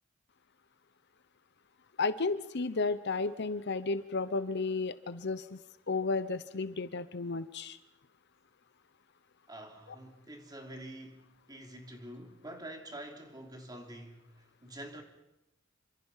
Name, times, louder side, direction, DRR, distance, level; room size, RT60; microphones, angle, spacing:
voice 1, 2.0-7.8, left 3 dB, 60° left, 0.9 m, -33 dB
voice 2, 9.5-15.0, right 1 dB, 20° right, 3.4 m, -47 dB
28.0 x 25.5 x 5.8 m
head